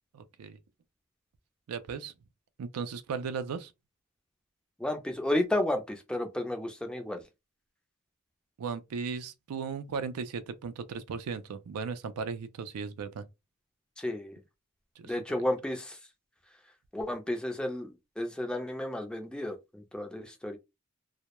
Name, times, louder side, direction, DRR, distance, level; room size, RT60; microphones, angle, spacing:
voice 1, 0.1-0.6 1.7-2.1 2.6-3.7 8.6-13.2 15.0-15.1, right 5 dB, 80° right, 0.4 m, -36 dB
voice 2, 4.8-7.2 14.0-14.4 15.0-16.0 16.9-20.6, left 1 dB, 5° left, 0.4 m, -32 dB
2.2 x 2.0 x 2.8 m
head